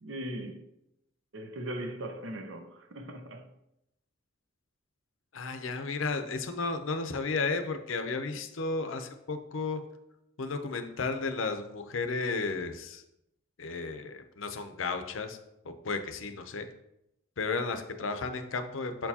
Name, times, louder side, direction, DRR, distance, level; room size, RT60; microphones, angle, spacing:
voice 1, 0.0-0.7 1.3-3.5, right 1 dB, 70° right, 0.7 m, -39 dB
voice 2, 5.3-9.8 10.4-13.0 13.6-15.4 15.6-16.7 17.4-19.1, left 4 dB, 80° left, 0.6 m, -33 dB
7.4 x 4.5 x 2.8 m
head